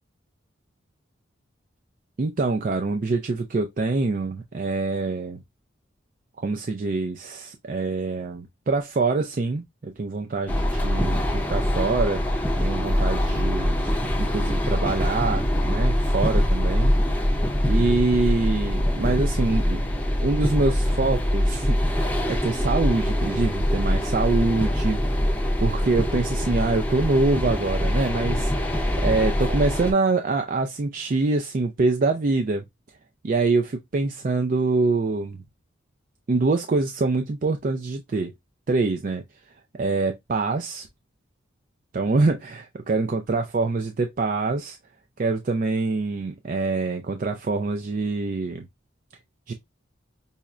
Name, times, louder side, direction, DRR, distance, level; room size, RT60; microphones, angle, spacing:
voice 1, 2.2-5.4 6.4-12.2 12.6-13.7 14.2-16.9 17.6-19.8 20.2-25.0 25.6-32.6 33.2-35.3 36.3-38.3 38.7-39.2 39.7-40.9 41.9-44.8 45.2-48.7 49.5-49.6, right 3 dB, 45° right, 0.4 m, -25 dB
sound 1, 10.5-29.9, equal, 10° left, 0.5 m, -23 dB
5.5 x 2.0 x 2.4 m
head